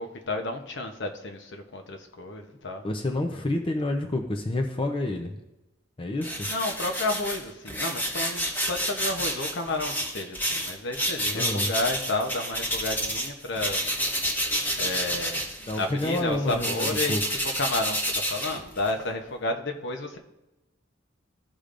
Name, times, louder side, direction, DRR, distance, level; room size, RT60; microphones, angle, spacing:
voice 1, 0.0-2.8 6.5-13.8 14.8-15.5 15.8-20.2, left 2 dB, 65° left, 4 dB, 0.9 m, -31 dB
voice 2, 2.8-5.4 6.0-6.5 11.3-11.7 15.7-17.2, left 2 dB, 25° left, 4 dB, 0.6 m, -29 dB
sound 1, 6.2-13.3 13.5-19.0, equal, 10° left, 1.2 m, -29 dB
14.0 x 5.0 x 2.5 m, 0.96 s
head